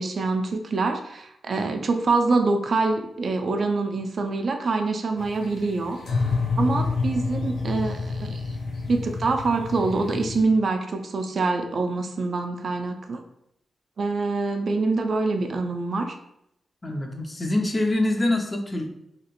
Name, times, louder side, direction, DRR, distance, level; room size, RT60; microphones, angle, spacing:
voice 1, 0.0-6.0 6.6-8.4 8.9-13.2 14.0-16.2, right 3 dB, 55° right, 5 dB, 0.3 m, -25 dB
sound 1, 5.2-10.4, left 4 dB, 75° left, 0.6 m, -28 dB
voice 2, 16.8-18.9, left 1 dB, 30° left, 3 dB, 0.5 m, -25 dB
2.8 x 2.4 x 2.9 m, 0.79 s
cardioid pair, 95°, 0 cm